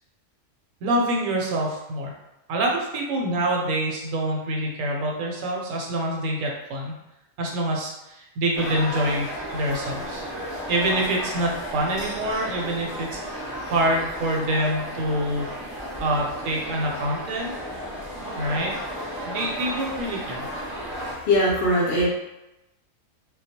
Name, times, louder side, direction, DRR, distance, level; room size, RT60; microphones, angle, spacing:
voice 1, 0.8-2.1 2.5-7.0 7.4-9.3 9.5-10.3 10.7-15.4 16.0-17.5 18.4-18.7 19.3-20.5, right 1 dB, 80° right, -1 dB, 1.0 m, -26 dB
sound 1, 8.6-21.1, equal, 5° left, 0.8 m, -33 dB
voice 2, 21.0-22.1, left 1 dB, 65° left, -4 dB, 0.6 m, -21 dB
2.2 x 2.0 x 2.7 m, 0.92 s
omnidirectional pair, 1.3 m